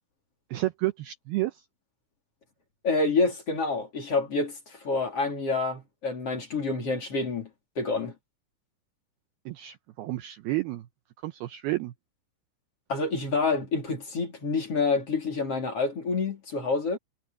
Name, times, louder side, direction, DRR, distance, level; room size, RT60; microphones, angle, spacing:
voice 1, 0.5-1.6 9.5-10.9 11.2-11.9, right 18 dB, 80° right, 2.3 m, -31 dB
voice 2, 2.8-7.5 7.8-8.1 12.9-17.0, left 3 dB, 35° left, 4.1 m, -28 dB
omnidirectional pair, 5.5 m